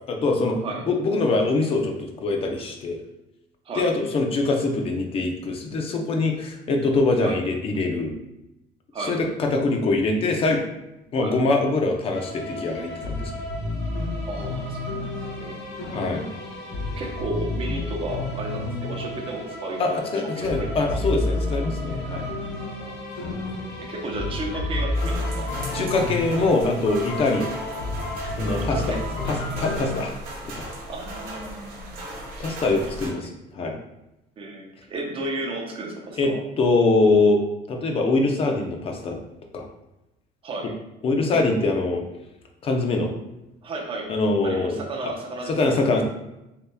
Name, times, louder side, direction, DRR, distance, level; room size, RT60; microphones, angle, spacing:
voice 1, 0.1-0.6 0.9-3.0 3.8-8.1 9.1-10.6 11.1-13.3 15.9-16.3 19.8-22.3 25.7-27.5 28.4-28.8 29.3-30.2 30.4-30.7 32.4-33.8 36.2-37.4 37.7-39.2 39.5-39.7 41.0-42.0 42.6-43.1 44.1-45.1 45.5-46.0, left 3 dB, 30° left, 3 dB, 0.6 m, -23 dB
sound 1, 12.1-30.0, left 2 dB, 75° left, 1.0 m, -30 dB
voice 2, 14.3-15.6 17.0-20.9 22.8-22.9 23.2-23.3 23.8-25.5 28.6-29.6 30.9-32.0 32.9-33.1 34.4-36.4 40.4-40.7 43.6-44.2 44.4-45.8, right 2 dB, 30° right, 1 dB, 0.7 m, -33 dB
sound 2, 24.9-33.1, right 1 dB, 55° right, 1.3 m, -37 dB
6.7 x 2.9 x 2.2 m, 0.91 s
cardioid pair, 175°, 18 cm